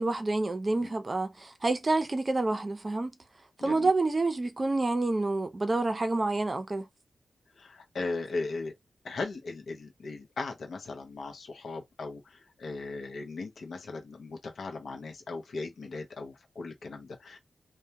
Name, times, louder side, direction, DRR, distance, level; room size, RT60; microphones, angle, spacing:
voice 1, 0.0-3.1 3.6-6.8, right 2 dB, 30° right, 0.5 m, -28 dB
voice 2, 3.6-3.9 7.6-8.7 9.0-17.4, left 3 dB, 75° left, 0.6 m, -38 dB
2.2 x 2.2 x 2.8 m
wide cardioid pair, 110°, 0 cm